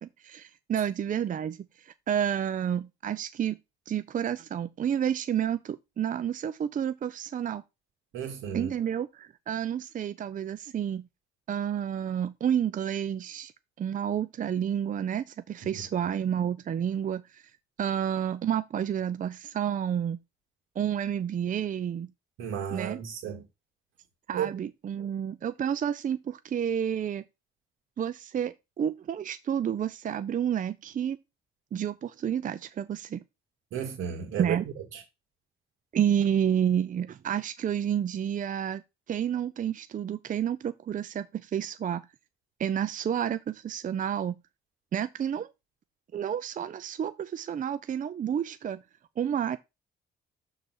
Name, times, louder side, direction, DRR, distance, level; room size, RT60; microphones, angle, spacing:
voice 1, 0.0-3.6 3.9-7.6 8.5-11.1 11.5-13.5 13.8-17.4 17.8-20.2 20.8-22.1 22.7-23.0 24.3-27.2 28.0-31.2 31.7-33.2 34.4-34.6 35.9-38.8 39.1-42.1 42.6-44.4 44.9-45.5 46.1-48.8 49.2-49.6, right 9 dB, 40° right, 0.5 m, -30 dB
voice 2, 8.1-8.7 15.7-15.8 22.4-23.4 24.3-24.5 33.7-35.0, right 8 dB, 90° right, 2.3 m, -33 dB
6.8 x 3.9 x 6.2 m
cardioid pair, 90°, 20 cm